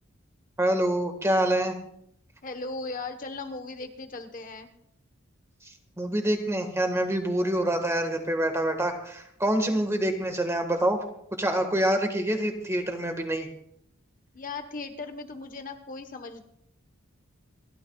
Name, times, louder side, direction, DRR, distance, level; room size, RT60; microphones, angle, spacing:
voice 1, 0.6-1.8 6.0-11.0 11.4-13.5, right 1 dB, 15° right, 5 dB, 1.6 m, -26 dB
voice 2, 2.4-4.7 14.3-16.4, left 3 dB, 40° left, 7 dB, 1.1 m, -37 dB
28.5 x 13.0 x 2.4 m, 0.72 s
head